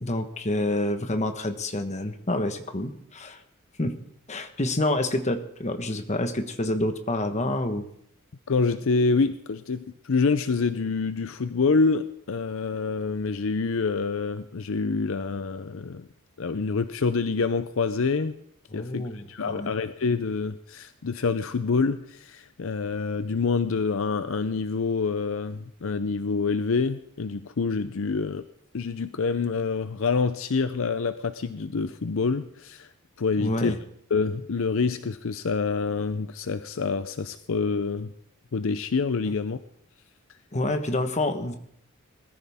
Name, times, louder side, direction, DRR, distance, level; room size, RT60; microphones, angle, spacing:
voice 1, 0.0-3.4 3.8-3.9 4.3-7.9 18.7-19.7 33.4-33.8 40.5-41.6, left 1 dB, 30° left, 7 dB, 1.3 m, -28 dB
voice 2, 8.5-16.1 16.4-18.3 18.7-28.5 28.7-32.9 33.2-33.7 34.1-38.1 38.5-39.6, left 4 dB, 65° left, 11 dB, 0.6 m, -26 dB
20.0 x 14.0 x 3.6 m, 0.71 s
head